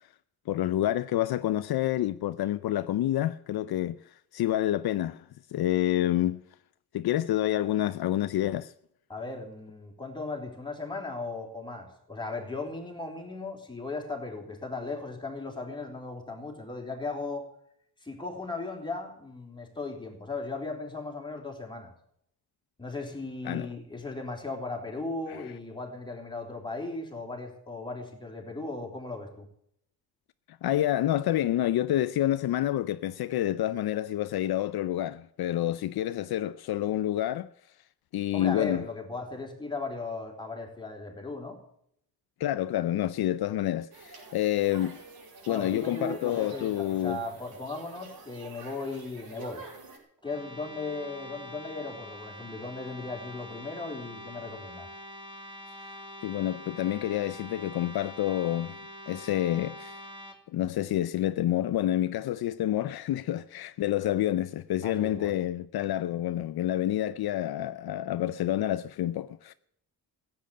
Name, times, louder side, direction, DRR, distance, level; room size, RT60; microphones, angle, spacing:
voice 1, 0.5-4.0 4.3-5.2 5.5-6.4 6.9-8.7 23.4-23.7 25.3-25.4 30.6-37.5 38.1-38.8 42.4-45.0 45.5-47.2 56.2-58.8 59.1-60.0 60.5-69.5, left 13 dB, 70° left, 0.6 m, -28 dB
voice 2, 9.1-17.4 18.0-21.9 22.8-29.5 38.3-41.6 45.5-49.6 50.2-54.9 64.8-65.4, left 3 dB, 10° left, 4.0 m, -37 dB
sound 1, 43.9-50.0, right 4 dB, 70° right, 6.8 m, -48 dB
sound 2, 50.2-60.3, left 1 dB, 15° right, 2.7 m, -45 dB
16.0 x 8.9 x 8.8 m
wide cardioid pair, 145°, 38 cm